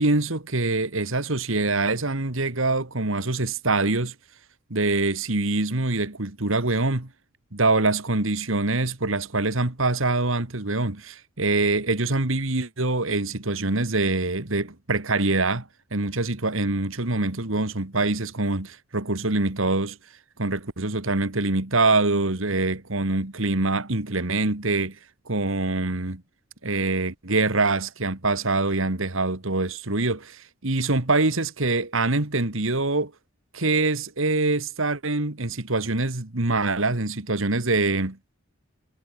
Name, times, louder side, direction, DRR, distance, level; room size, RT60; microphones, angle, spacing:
voice 1, 0.0-4.1 4.7-7.1 7.5-20.0 20.4-25.0 25.3-26.2 26.6-33.1 33.5-38.2, right 2 dB, 70° right, 2.0 m, -24 dB
head